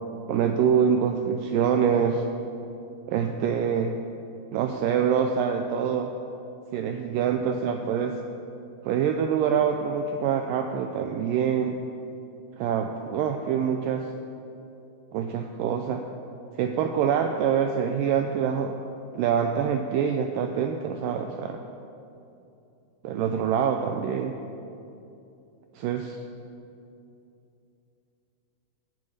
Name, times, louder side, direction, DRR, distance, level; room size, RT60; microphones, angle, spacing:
voice 1, 0.3-2.3 3.1-3.9 4.5-6.1 6.7-8.2 8.8-11.8 12.6-14.1 15.1-16.0 16.6-18.8 19.1-21.6 23.0-24.4 25.8-26.1, right 7 dB, 85° right, 5 dB, 1.9 m, -25 dB
12.5 x 6.5 x 8.6 m, 2.7 s
omnidirectional pair, 4.5 m